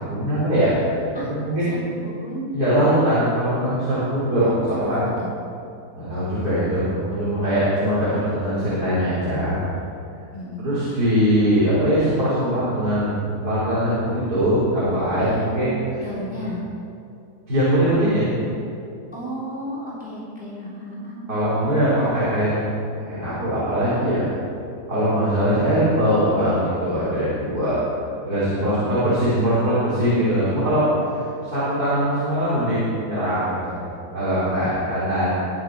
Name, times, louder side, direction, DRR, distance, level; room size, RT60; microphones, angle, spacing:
voice 1, 0.1-1.0 1.3-1.7 2.5-5.0 5.9-9.6 10.6-13.2 13.4-15.7 17.5-18.3 21.3-22.6 23.1-24.3 24.9-27.7 28.2-30.9 31.4-33.8 34.1-35.3, equal, 65° right, -11 dB, 4.6 m, -21 dB
voice 2, 1.6-2.5 4.3-5.3 10.3-10.7 15.2-15.6 16.0-16.6 19.1-21.2 28.6-28.9, equal, 5° right, -8 dB, 3.3 m, -33 dB
22.0 x 9.1 x 4.8 m, 2.6 s
omnidirectional pair, 1.8 m